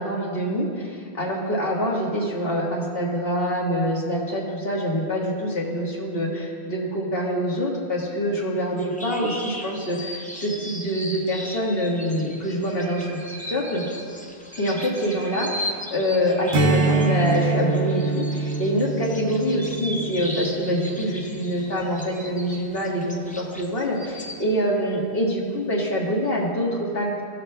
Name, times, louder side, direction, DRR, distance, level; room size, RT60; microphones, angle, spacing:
voice 1, 0.0-13.8 14.6-27.2, equal, 65° left, -3 dB, 1.6 m, -25 dB
sound 1, 8.7-24.4, equal, 10° left, 0.5 m, -38 dB
sound 2, 12.7-13.7 14.5-15.5 16.3-17.3, right 5 dB, 90° right, 1.5 m, -43 dB
Strum, 16.5-21.3, right 3 dB, 70° right, 0.9 m, -25 dB
17.0 x 6.6 x 2.2 m, 2.2 s
omnidirectional pair, 1.1 m